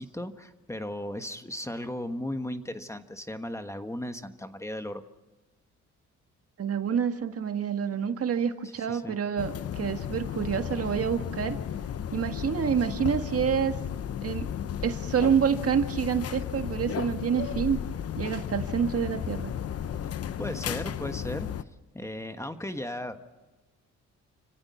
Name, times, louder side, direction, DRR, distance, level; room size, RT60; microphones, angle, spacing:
voice 1, 0.0-5.0 8.8-9.2 20.4-21.5 21.9-23.2, left 1 dB, 10° left, 8 dB, 1.4 m, -36 dB
voice 2, 6.6-11.6 12.1-13.8 14.2-14.5 14.8-17.8 18.2-19.5, right 7 dB, 50° right, 7 dB, 1.8 m, -27 dB
sound 1, 9.4-21.6, left 9 dB, 55° left, 0.9 m, -34 dB
29.5 x 17.0 x 5.8 m, 1.2 s
cardioid pair, 90°, 30 cm